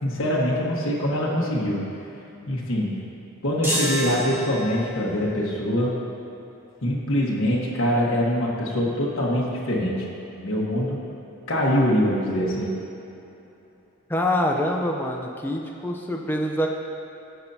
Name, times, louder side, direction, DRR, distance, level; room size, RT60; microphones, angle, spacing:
voice 1, 0.0-1.8 2.5-2.9 3.4-5.9 6.8-10.1 10.4-11.0 11.5-12.7, equal, 60° left, -5 dB, 1.5 m, -23 dB
sound 1, 3.6-5.1, right 1 dB, 10° right, 1.8 m, -28 dB
voice 2, 14.1-16.7, left 1 dB, 10° left, 0 dB, 0.7 m, -25 dB
12.5 x 8.2 x 2.9 m, 3.0 s
head